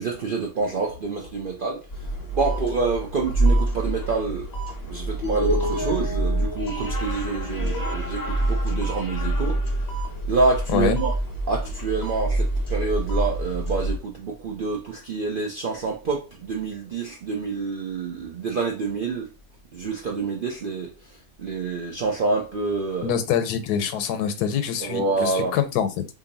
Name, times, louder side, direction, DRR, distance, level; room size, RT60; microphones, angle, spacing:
voice 1, 0.0-1.8 2.3-4.5 4.9-9.6 10.3-11.1 11.5-19.3 19.7-20.9 21.4-23.1 24.8-25.5, right 4 dB, 65° right, 0.5 m, -27 dB
sound 1, 1.9-14.0, right 1 dB, 25° left, 0.4 m, -26 dB
voice 2, 23.0-26.1, left 8 dB, 90° left, 1.2 m, -25 dB
2.7 x 2.6 x 3.9 m
omnidirectional pair, 1.6 m